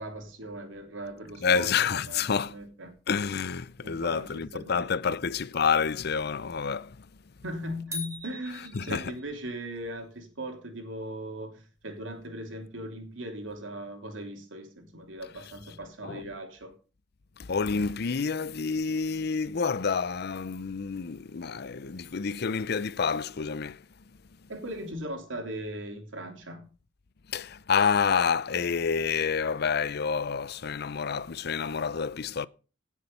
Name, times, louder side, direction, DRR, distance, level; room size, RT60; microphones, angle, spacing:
voice 1, 0.0-2.9 3.8-5.2 7.4-16.7 24.5-26.7, right 1 dB, 85° right, 3.3 m, -39 dB
voice 2, 1.4-2.5 3.1-7.0 8.7-9.0 16.0-16.2 17.4-23.8 27.3-32.5, left 6 dB, 55° left, 0.6 m, -28 dB
sound 1, 7.9-9.5, left 2 dB, 15° right, 4.5 m, -40 dB
17.5 x 7.4 x 5.5 m
head